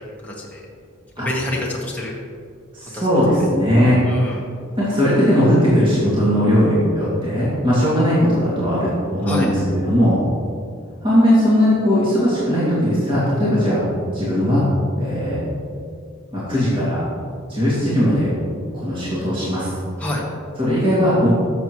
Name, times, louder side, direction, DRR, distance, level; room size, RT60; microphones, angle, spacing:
voice 1, 0.2-0.6 1.2-2.2 2.9-3.0 4.0-4.4 9.2-9.5 20.0-20.2, left 1 dB, 5° left, -4 dB, 1.1 m, -27 dB
voice 2, 2.7-4.4 4.8-10.2 11.0-13.8 14.1-14.7 15.0-15.4 16.3-17.0 17.5-18.3 18.7-19.7 20.6-21.3, equal, 25° right, -10 dB, 2.5 m, -18 dB
12.5 x 7.1 x 3.2 m, 2.2 s
head